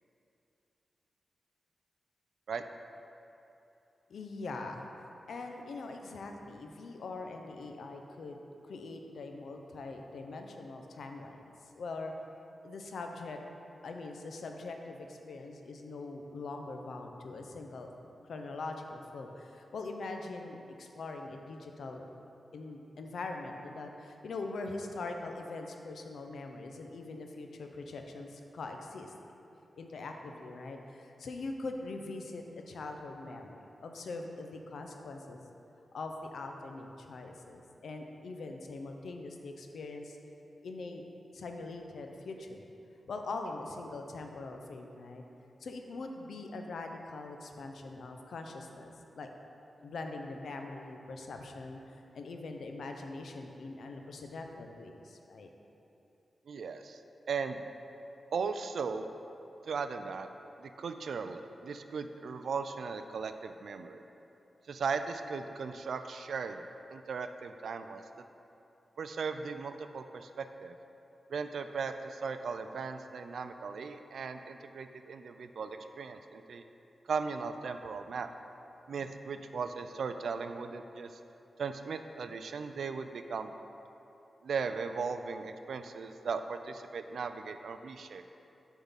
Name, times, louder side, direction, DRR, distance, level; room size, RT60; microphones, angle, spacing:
voice 1, 4.1-4.9 5.3-8.4 8.6-11.4 11.7-12.1 12.6-13.4 13.8-17.9 18.3-22.1 22.5-29.1 29.8-35.5 35.9-40.2 40.6-41.0 41.3-42.7 43.1-45.2 45.6-49.3 49.8-55.5, left 3 dB, 80° left, 3 dB, 0.6 m, -42 dB
voice 2, 56.5-57.0 57.3-57.6 58.3-59.1 59.7-60.3 60.6-64.0 64.7-66.6 66.9-68.0 69.0-70.8 71.3-76.6 77.1-78.3 78.9-81.1 81.6-83.5 84.4-88.2, right 5 dB, 80° right, 8 dB, 0.3 m, -37 dB
7.0 x 3.7 x 5.6 m, 2.9 s
wide cardioid pair, 125°, 0 cm